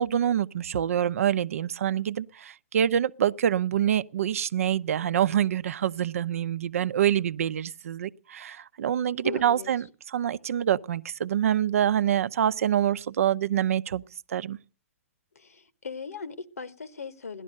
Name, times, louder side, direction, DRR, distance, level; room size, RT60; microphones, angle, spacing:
voice 1, 0.0-14.0 14.3-14.6, right 10 dB, 70° right, 0.7 m, -26 dB
voice 2, 9.2-9.7 15.3-17.4, left 5 dB, 90° left, 1.4 m, -39 dB
17.0 x 12.0 x 6.4 m
hypercardioid pair, 135°, 8 cm